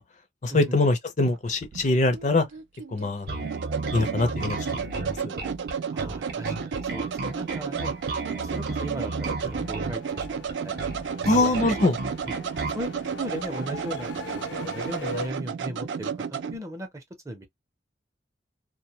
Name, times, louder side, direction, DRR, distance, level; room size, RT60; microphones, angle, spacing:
voice 1, 0.4-2.5 2.9-3.5 3.9-5.4 11.3-12.0, left 2 dB, 40° left, 0.5 m, -24 dB
sound 1, 1.2-16.6, right 6 dB, 85° right, 0.4 m, -33 dB
Bass guitar, 3.3-12.9, right 3 dB, 60° right, 0.7 m, -34 dB
voice 2, 5.9-7.9 8.4-11.8 12.0-12.4 12.7-12.9 13.2-17.5, right 1 dB, 15° right, 0.6 m, -37 dB
sound 2, 7.1-15.3, left 3 dB, 85° left, 0.7 m, -42 dB
2.2 x 2.2 x 2.8 m
head